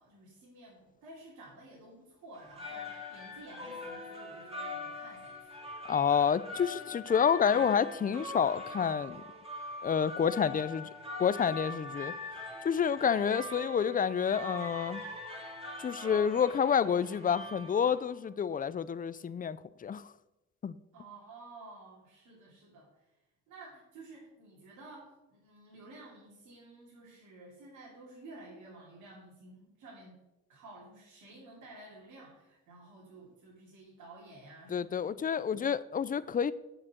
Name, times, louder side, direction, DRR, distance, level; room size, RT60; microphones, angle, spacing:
voice 1, 0.0-5.6 10.3-10.8 11.8-12.0 20.9-23.0 23.5-30.2 30.5-35.4, right 2 dB, 85° right, 3.1 m, -52 dB
sound 1, 2.3-18.2, left 2 dB, 20° right, 2.5 m, -42 dB
voice 2, 5.9-9.2 9.8-10.9 11.2-12.1 12.6-15.0 15.8-20.0 20.6-20.7 34.7-36.5, left 7 dB, 30° left, 0.5 m, -29 dB
6.7 x 6.4 x 7.6 m
cardioid pair, 90°, 30 cm